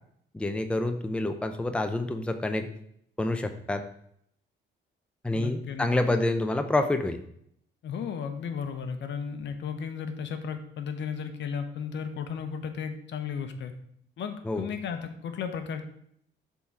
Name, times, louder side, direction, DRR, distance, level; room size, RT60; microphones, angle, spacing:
voice 1, 0.3-2.7 3.2-3.8 5.2-7.2 14.5-14.7, left 2 dB, 5° left, 7 dB, 0.5 m, -27 dB
voice 2, 5.3-6.2 7.8-13.7 14.2-15.8, left 6 dB, 65° left, 8 dB, 0.8 m, -34 dB
6.9 x 3.7 x 4.5 m, 0.69 s
cardioid pair, 90°, 20 cm